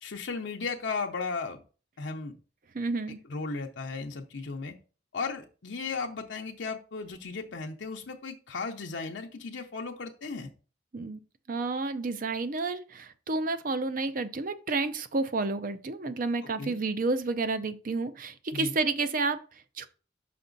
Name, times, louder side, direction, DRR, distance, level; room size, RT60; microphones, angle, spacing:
voice 1, 0.0-1.6 2.0-2.4 3.3-4.8 5.1-10.5 16.6-16.8 18.5-18.8, left 4 dB, 75° left, 2 dB, 0.7 m, -35 dB
voice 2, 2.7-3.2 10.9-11.2 11.5-19.9, right 3 dB, 45° right, 11 dB, 0.6 m, -30 dB
5.9 x 5.3 x 3.9 m, 0.36 s
head